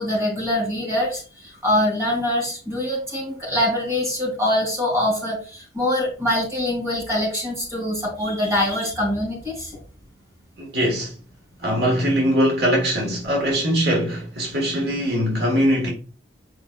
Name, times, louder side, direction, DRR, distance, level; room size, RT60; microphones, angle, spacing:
voice 1, 0.0-9.7, left 1 dB, 15° right, 3.2 m, -24 dB
voice 2, 10.6-11.1 11.6-15.9, equal, 60° right, 1.6 m, -21 dB
8.0 x 5.2 x 2.3 m
head